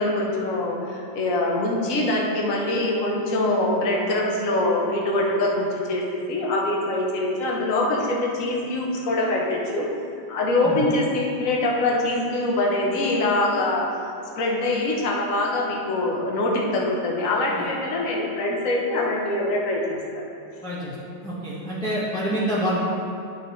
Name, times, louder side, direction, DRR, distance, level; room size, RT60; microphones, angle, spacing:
voice 1, 0.0-9.9 10.3-13.9 14.4-20.2, left 2 dB, 50° left, -2 dB, 1.3 m, -24 dB
voice 2, 20.6-20.9 21.2-22.8, equal, 5° left, -8 dB, 0.9 m, -27 dB
11.0 x 6.3 x 3.2 m, 2.5 s
omnidirectional pair, 2.2 m